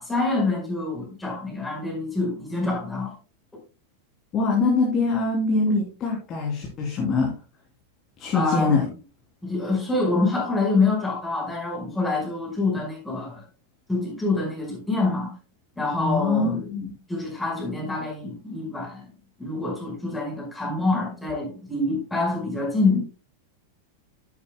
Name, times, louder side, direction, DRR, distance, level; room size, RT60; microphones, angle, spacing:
voice 1, 0.0-3.1 8.3-8.9 9.4-13.4 13.9-15.3 15.8-16.7 17.1-19.1 19.4-23.0, left 3 dB, 5° left, 5.2 m, -26 dB
voice 2, 4.3-7.3 8.2-8.8 16.0-16.9, left 3 dB, 30° left, 3.1 m, -23 dB
12.0 x 10.0 x 2.2 m
figure-of-eight pair, 90°, 0 cm